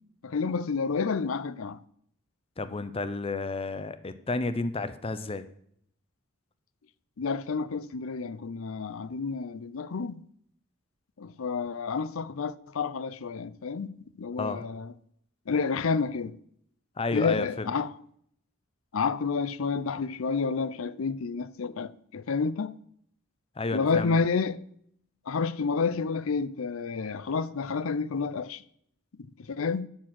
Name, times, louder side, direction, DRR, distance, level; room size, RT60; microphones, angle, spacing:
voice 1, 0.2-1.8 7.2-10.2 11.2-14.9 15.5-16.3 17.1-17.9 18.9-22.7 23.7-24.6 25.3-28.6 29.5-29.9, left 5 dB, 70° left, 0.5 m, -29 dB
voice 2, 2.6-5.5 14.4-14.7 17.0-17.7 23.6-24.2, left 3 dB, 25° left, 0.7 m, -31 dB
12.0 x 4.5 x 7.5 m
head